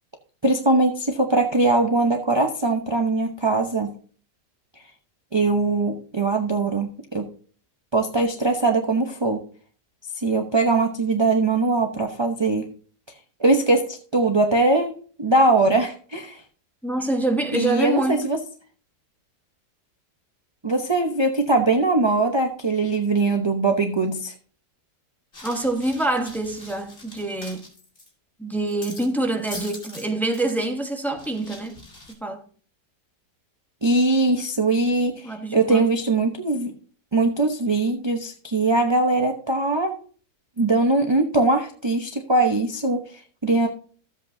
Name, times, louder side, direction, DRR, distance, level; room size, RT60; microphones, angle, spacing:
voice 1, 0.4-3.9 5.3-7.3 7.9-9.4 10.2-12.7 13.4-16.4 17.5-18.4 20.6-24.3 33.8-36.7 37.1-39.9 40.6-43.7, right 2 dB, 25° right, 0.6 m, -21 dB
voice 2, 16.8-18.3 25.4-27.7 28.4-31.8 32.2-32.4 35.2-35.9, right 2 dB, ahead, 0.9 m, -26 dB
sound 1, 25.3-28.1 28.5-29.1 29.4-30.1 30.3-30.6 31.2-32.1, left 2 dB, 30° left, 2.6 m, -42 dB
14.0 x 7.9 x 2.7 m
omnidirectional pair, 1.8 m